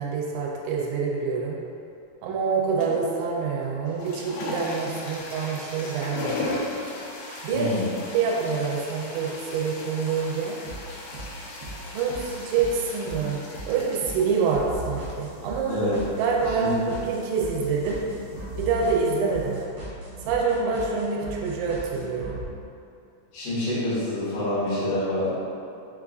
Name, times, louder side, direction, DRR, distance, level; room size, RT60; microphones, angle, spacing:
voice 1, 0.0-1.6 2.2-6.5 7.4-7.7 8.1-10.6 11.9-13.4 13.7-15.9 16.2-18.0 18.6-19.6 20.2-22.4, right 5 dB, 90° right, -2 dB, 2.9 m, -26 dB
sound 1, 2.8-3.1 3.8-19.6, left 2 dB, 85° left, 2.2 m, -38 dB
sound 2, 5.4-5.5 6.3-6.4 7.3-7.4 8.3-8.4 9.2-9.3 10.2-10.3 10.7-22.5, right 2 dB, 75° right, 1.8 m, -39 dB
voice 2, 7.5-7.9 15.7-16.0 16.5-16.7 23.3-25.3, left 1 dB, 70° left, -11 dB, 1.6 m, -27 dB
6.6 x 2.3 x 2.4 m, 2.6 s
omnidirectional pair, 5.1 m